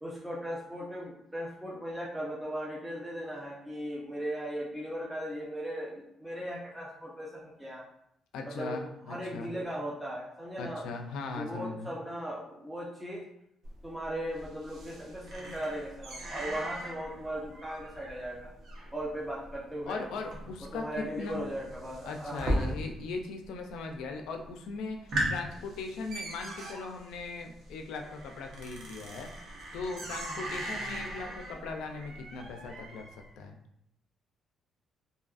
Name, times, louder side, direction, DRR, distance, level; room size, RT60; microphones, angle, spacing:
voice 1, 0.0-7.8 8.5-8.8 9.1-10.8 11.4-13.2 13.8-18.5 18.9-20.0 20.6-22.7, equal, 5° right, -4 dB, 0.5 m, -38 dB
voice 2, 8.3-9.5 10.6-12.0 19.8-21.4 22.1-29.3 29.7-33.0 33.4-33.6, left 4 dB, 90° left, 4 dB, 0.3 m, -39 dB
sound 1, 13.6-23.2 23.5-24.1 24.5-24.6 24.9-33.2, right 1 dB, 65° right, 0.7 m, -38 dB
2.6 x 2.4 x 2.4 m, 0.78 s
cardioid pair, 110°, 0 cm